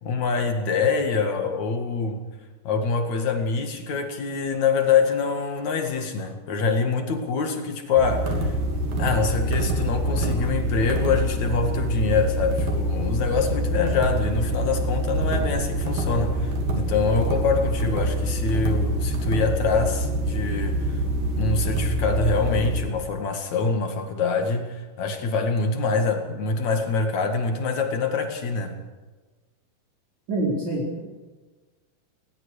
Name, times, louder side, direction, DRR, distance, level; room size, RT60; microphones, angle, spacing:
voice 1, 0.0-2.2 2.6-8.6 9.0-21.0 21.3-28.8, left 4 dB, 50° left, 5 dB, 3.1 m, -25 dB
sound 1, 8.0-22.9, right 1 dB, 65° right, 4.6 m, -25 dB
voice 2, 30.3-31.0, right 1 dB, 45° right, -4 dB, 5.5 m, -26 dB
20.5 x 19.5 x 6.7 m, 1.3 s
omnidirectional pair, 4.6 m